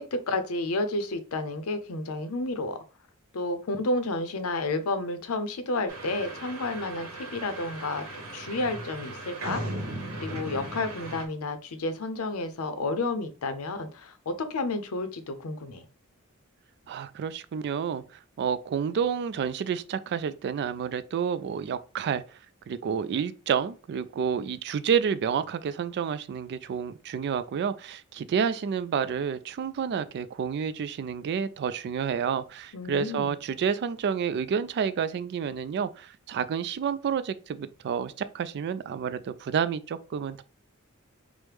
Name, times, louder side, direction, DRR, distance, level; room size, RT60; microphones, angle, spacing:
voice 1, 0.0-2.8 3.3-8.0 8.3-9.6 10.2-15.9 32.7-33.3, left 2 dB, 75° left, 0.6 m, -31 dB
sound 1, 5.9-11.3, right 1 dB, 70° right, 1.0 m, -37 dB
voice 2, 16.9-22.4 22.7-40.4, right 7 dB, 50° right, 0.3 m, -29 dB
4.7 x 2.1 x 3.3 m
head